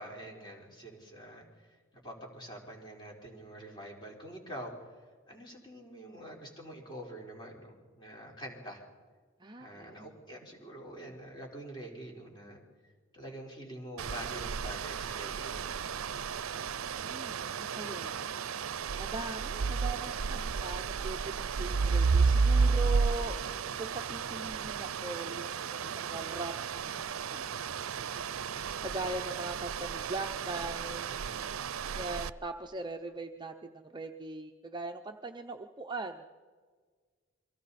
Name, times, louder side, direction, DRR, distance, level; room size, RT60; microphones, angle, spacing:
voice 1, 0.0-5.0 5.3-8.8 9.6-12.6 13.1-15.8 28.3-28.9, right 1 dB, 20° left, -1 dB, 4.4 m, -46 dB
voice 2, 9.4-10.1 17.0-18.2 19.0-23.4 23.8-27.5 28.8-31.2 31.9-36.3, right 3 dB, 20° right, 5 dB, 0.7 m, -41 dB
sound 1, 14.0-32.3, right 5 dB, 90° right, 0.6 m, -32 dB
29.5 x 23.5 x 4.2 m, 1.6 s
head